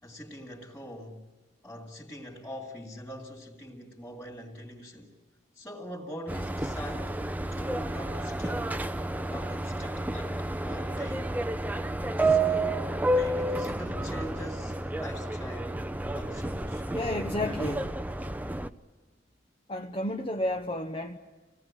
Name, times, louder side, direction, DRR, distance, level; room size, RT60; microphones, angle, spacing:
voice 1, 0.0-1.2 1.6-5.1 5.5-7.2 7.5-8.8 9.3-11.3 12.2-15.9 16.1-17.8, equal, 10° left, -5 dB, 3.0 m, -43 dB
Subway metro underground, 6.3-18.7, right 2 dB, 10° right, 0.7 m, -30 dB
voice 2, 16.9-17.9 19.7-21.2, left 1 dB, 30° left, 4 dB, 1.0 m, -31 dB
27.0 x 18.0 x 9.0 m, 1.4 s
head